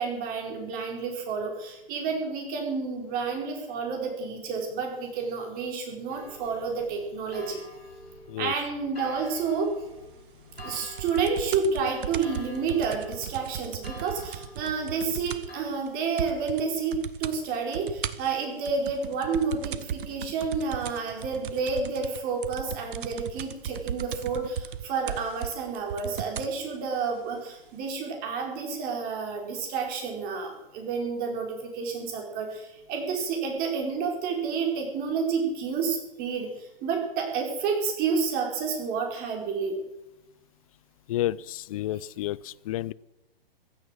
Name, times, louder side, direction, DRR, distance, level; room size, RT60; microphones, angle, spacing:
voice 1, 0.0-7.6 8.4-9.7 10.6-39.8, right 5 dB, 30° right, 2 dB, 4.6 m, -30 dB
sound 1, 6.1-15.6, left 2 dB, 85° left, 6.6 m, -47 dB
sound 2, 10.6-15.6 15.9-16.0 16.2-16.6 16.9-17.4 17.7-26.6 27.4-27.5, right 9 dB, 60° right, 1.2 m, -36 dB
voice 2, 41.1-42.9, left 14 dB, 35° left, 22 dB, 0.5 m, -30 dB
16.0 x 12.5 x 6.4 m, 0.94 s
hypercardioid pair, 125°, 30 cm